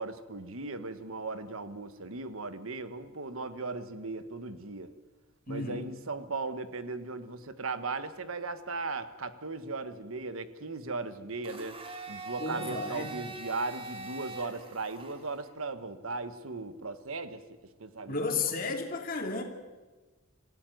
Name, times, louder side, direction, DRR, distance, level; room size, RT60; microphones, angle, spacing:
voice 1, 0.0-4.9 5.5-11.7 12.1-17.4 17.8-18.4, right 3 dB, 75° right, 11 dB, 1.4 m, -37 dB
voice 2, 5.5-5.8 12.4-13.1 18.1-19.4, left 4 dB, 45° left, 3 dB, 3.0 m, -33 dB
Domestic sounds home sounds, 11.4-15.5, right 3 dB, 25° right, 2.6 m, -43 dB
26.5 x 15.0 x 9.3 m, 1.3 s
head